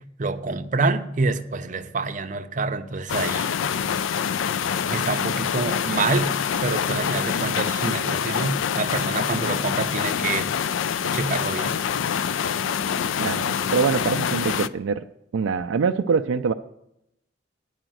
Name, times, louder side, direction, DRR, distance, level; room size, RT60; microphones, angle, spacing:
voice 1, 0.0-3.5 4.9-10.5 11.1-11.8, right 3 dB, 40° right, 0.6 m, -27 dB
sound 1, 3.1-14.7, left 8 dB, 80° left, 0.4 m, -25 dB
voice 2, 13.2-15.0 15.3-16.5, right 5 dB, 90° right, 0.4 m, -24 dB
9.9 x 4.9 x 7.6 m
head